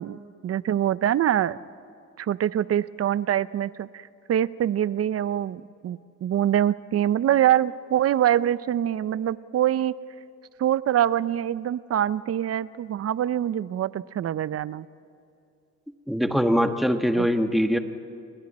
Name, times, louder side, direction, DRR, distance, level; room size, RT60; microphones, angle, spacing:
voice 1, 0.0-1.6 2.2-9.9 10.6-14.9 17.2-17.3, right 11 dB, 50° right, 17 dB, 0.6 m, -24 dB
voice 2, 16.1-17.8, equal, ahead, 6 dB, 1.5 m, -22 dB
29.0 x 21.5 x 4.3 m, 2.6 s
cardioid pair, 90°, 30 cm